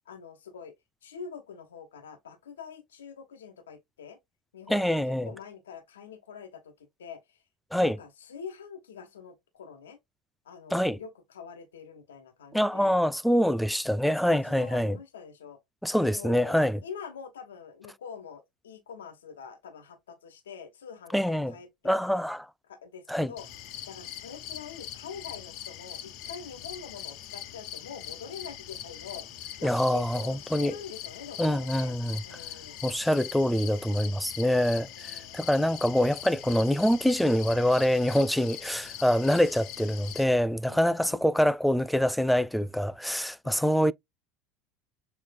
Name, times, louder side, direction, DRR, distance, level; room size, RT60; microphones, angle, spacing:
voice 1, 0.1-0.7 1.0-4.2 4.5-7.4 7.8-10.0 10.4-13.0 14.2-15.6 16.1-21.9 22.7-29.2 29.6-31.9 32.2-32.8 35.0-35.4 40.7-41.4 43.4-43.8, left 6 dB, 90° left, 1.1 m, -45 dB
voice 2, 4.7-5.3 7.7-8.0 10.7-11.0 12.5-15.0 15.8-16.8 21.1-21.5 21.8-22.5 23.1-23.3 29.6-30.8 31.4-32.2 32.8-43.9, equal, ahead, 0.4 m, -25 dB
sound 1, 23.4-40.2, left 11 dB, 60° left, 1.0 m, -42 dB
7.0 x 3.1 x 2.3 m
hypercardioid pair, 85°, 0 cm